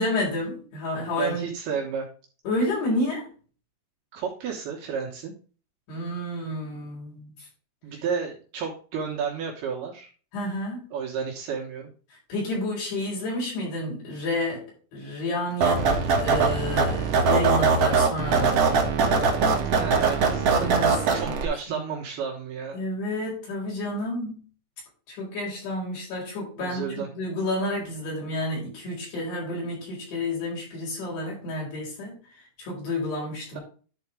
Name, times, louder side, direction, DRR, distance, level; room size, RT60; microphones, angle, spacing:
voice 1, 0.0-1.4 2.4-3.3 5.9-7.5 10.3-10.8 12.1-14.6 14.9-18.6 20.6-21.8 22.7-24.4 25.1-32.1 32.6-33.6, left 1 dB, 75° left, -4 dB, 6.4 m, -30 dB
voice 2, 1.2-2.1 4.1-5.3 7.8-10.1 10.9-11.9 19.8-20.7 21.1-22.8 26.6-27.1, right 6 dB, 70° right, -1 dB, 3.2 m, -31 dB
sound 1, 15.6-21.5, right 4 dB, 55° right, 1.7 m, -22 dB
11.0 x 4.3 x 4.8 m, 0.38 s
omnidirectional pair, 4.7 m